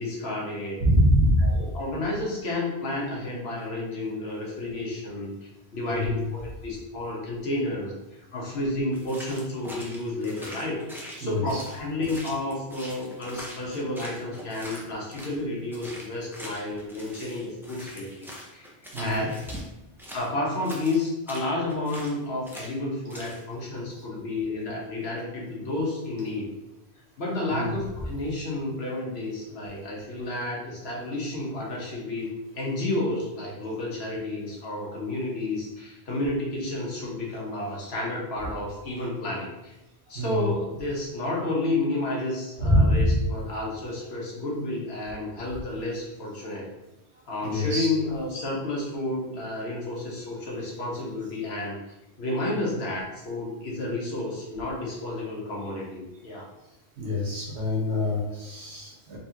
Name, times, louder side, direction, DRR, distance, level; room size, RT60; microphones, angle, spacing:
voice 1, 0.0-0.8 1.4-10.8 11.1-18.7 19.0-19.3 20.1-26.5 27.2-32.3 32.5-39.7 40.1-46.7 47.3-51.8 52.2-56.5, left 2 dB, 70° left, -3 dB, 1.3 m, -31 dB
voice 2, 0.8-1.5 5.9-6.3 11.2-11.6 18.9-19.3 27.5-27.8 40.1-40.5 42.6-43.2 47.4-47.9 57.0-59.2, equal, 80° right, -3 dB, 1.4 m, -24 dB
sound 1, 8.9-15.4 15.7-19.7 20.0-22.2 22.5-22.8 23.1-23.4, equal, 5° right, 0.6 m, -42 dB
4.1 x 3.2 x 2.8 m, 0.94 s
omnidirectional pair, 1.1 m